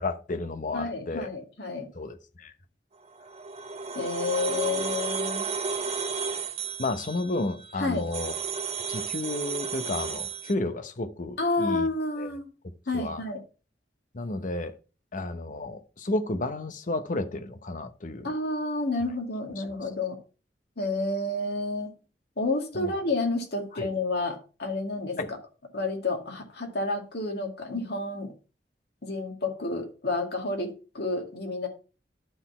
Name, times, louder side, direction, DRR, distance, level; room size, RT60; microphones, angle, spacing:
voice 1, 0.0-1.3 1.9-2.5 6.8-8.3 8.9-11.9 12.2-12.3 12.9-13.2 14.1-14.7 15.1-18.3 19.6-19.7 22.7-22.9 23.7-23.9 25.2-25.3, left 2 dB, 50° left, 0.8 m, -32 dB
voice 2, 0.7-1.9 3.9-5.5 7.8-8.1 11.4-12.5 12.9-13.4 18.2-20.2 20.8-21.9 22.4-25.2 25.7-28.3 29.0-31.7, left 2 dB, 65° left, 2.1 m, -30 dB
sound 1, 3.1-10.5, right 5 dB, 35° right, 0.7 m, -33 dB
11.5 x 4.0 x 4.2 m
head